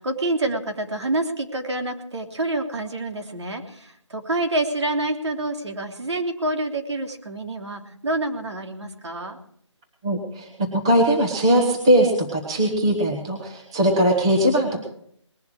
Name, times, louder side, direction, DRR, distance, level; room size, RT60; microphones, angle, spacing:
voice 1, 0.0-9.4, right 2 dB, 65° right, 3 dB, 3.2 m, -27 dB
voice 2, 10.0-10.5 10.8-14.8, right 1 dB, 10° right, 0 dB, 1.2 m, -20 dB
20.5 x 11.5 x 4.8 m, 0.65 s
hypercardioid pair, 180°, 16 cm